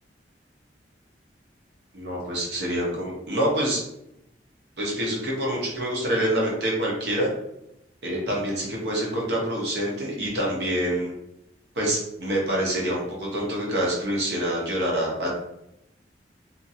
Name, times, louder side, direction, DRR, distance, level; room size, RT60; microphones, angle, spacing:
voice 1, 1.9-3.8 4.8-7.3 8.0-11.1 11.7-15.3, right 1 dB, 70° right, -3 dB, 1.0 m, -26 dB
2.7 x 2.5 x 2.7 m, 0.83 s
head